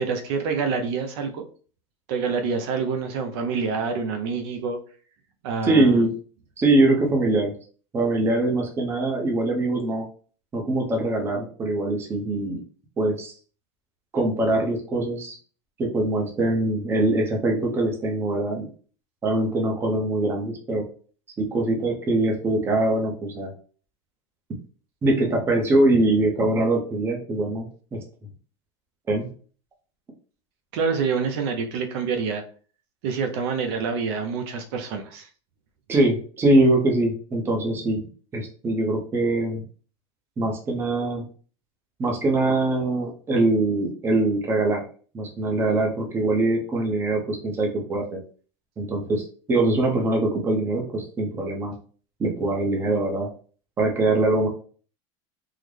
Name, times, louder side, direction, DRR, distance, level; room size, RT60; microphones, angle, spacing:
voice 1, 0.0-1.5 2.1-4.8 5.4-6.0 30.7-32.4 33.0-35.3, right 5 dB, 55° right, 5 dB, 0.5 m, -27 dB
voice 2, 5.6-6.1 6.6-7.5 7.9-10.0 10.5-12.6 13.0-13.3 14.1-15.4 15.8-18.7 19.2-20.9 21.4-23.5 25.0-28.0 29.1-29.3 35.9-38.0 38.3-39.6 40.4-41.2 42.0-44.8 45.1-48.2 48.8-51.8 52.2-53.3 53.8-54.5, right 2 dB, 15° right, 1 dB, 0.6 m, -23 dB
3.7 x 2.0 x 3.1 m, 0.41 s
supercardioid pair, 165°, 16 cm